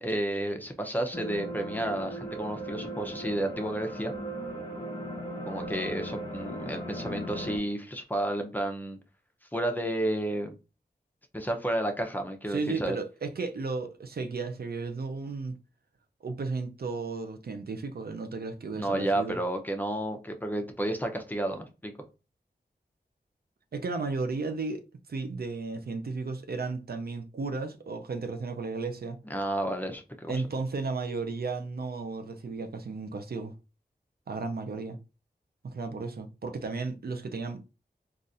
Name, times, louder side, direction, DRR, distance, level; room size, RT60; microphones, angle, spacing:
voice 1, 0.0-4.1 5.5-9.0 9.5-10.6 11.3-13.0 18.7-21.9 29.3-30.4, right 1 dB, 10° left, 0.6 m, -31 dB
sound 1, 1.1-7.6, right 1 dB, 25° left, 1.3 m, -37 dB
voice 2, 12.5-15.6 16.2-19.4 23.7-24.8 25.1-29.2 30.3-33.5 34.3-35.0 35.7-37.7, right 4 dB, 65° right, 0.5 m, -34 dB
3.9 x 2.4 x 2.5 m
wide cardioid pair, 55°, 17 cm